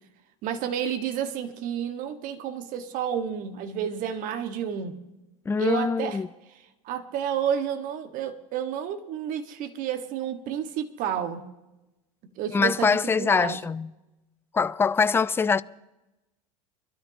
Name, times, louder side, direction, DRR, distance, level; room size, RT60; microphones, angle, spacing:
voice 1, 0.4-4.9 5.6-6.2 6.8-11.5 12.4-13.6, right 8 dB, 50° right, 1.7 m, -30 dB
voice 2, 5.5-6.3 12.5-13.9 14.5-15.6, left 5 dB, 15° left, 0.4 m, -23 dB
24.5 x 13.0 x 3.0 m
hypercardioid pair, 85°, 17 cm